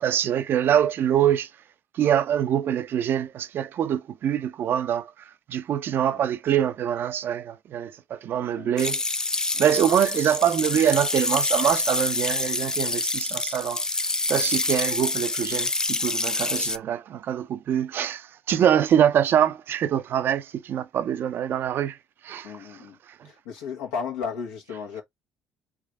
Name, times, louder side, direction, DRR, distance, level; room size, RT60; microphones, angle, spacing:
voice 1, 0.0-1.5 2.0-5.1 5.5-9.0 9.6-13.8 14.3-22.0 22.2-22.5, right 10 dB, 55° right, 0.5 m, -24 dB
voice 2, 8.4-8.7 9.5-9.8 22.4-23.0 23.2-25.0, left 6 dB, 85° left, 1.3 m, -35 dB
sound 1, 8.8-16.8, left 2 dB, 15° left, 0.4 m, -27 dB
3.5 x 3.2 x 3.5 m
supercardioid pair, 65°, 4 cm